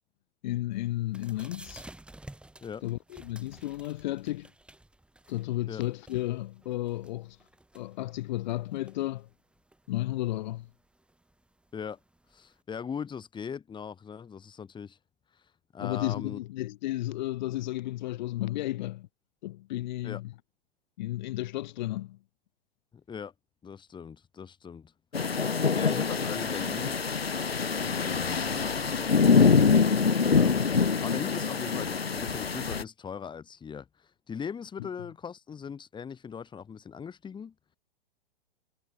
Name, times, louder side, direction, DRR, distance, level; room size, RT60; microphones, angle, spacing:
voice 1, 0.4-1.9 2.8-4.5 5.3-7.4 7.7-9.3 9.9-10.7 15.8-19.1 19.4-20.3 21.0-22.2 34.8-34.9, left 16 dB, 50° left, 5.9 m, -33 dB
sound 1, 0.7-12.6, right 1 dB, 5° right, 6.4 m, -54 dB
voice 2, 12.3-15.0 15.3-15.4 15.7-16.4 20.0-20.2 22.9-23.3 23.6-24.9 25.2-27.0 27.8-29.8 30.3-37.5, left 7 dB, 15° left, 6.9 m, -40 dB
sound 2, 25.1-32.8, left 5 dB, 85° left, 1.0 m, -25 dB
figure-of-eight pair, 110°, 29 cm